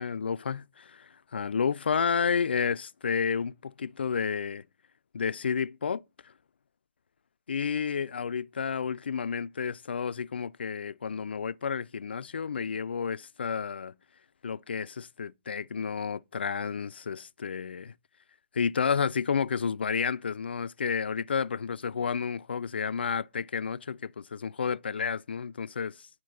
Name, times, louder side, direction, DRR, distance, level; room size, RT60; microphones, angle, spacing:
voice 1, 0.0-4.6 5.1-6.0 7.5-13.9 14.4-17.9 18.5-26.1, left 6 dB, 65° left, 0.4 m, -31 dB
11.0 x 4.3 x 6.4 m
figure-of-eight pair, 140°, 6 cm